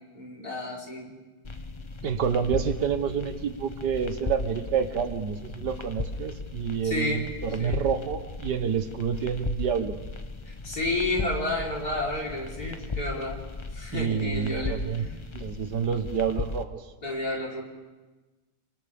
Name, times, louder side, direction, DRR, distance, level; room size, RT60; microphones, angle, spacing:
voice 1, 0.1-1.1 6.8-7.2 7.6-7.8 10.5-13.4 13.7-15.1 17.0-17.6, left 2 dB, 60° left, -3 dB, 4.8 m, -31 dB
sound 1, 1.4-16.6, left 3 dB, 40° left, 0.4 m, -37 dB
voice 2, 2.0-10.0 13.9-15.1 15.3-16.8, right 7 dB, 70° right, 8 dB, 1.9 m, -28 dB
30.0 x 27.5 x 3.6 m, 1.2 s
omnidirectional pair, 1.9 m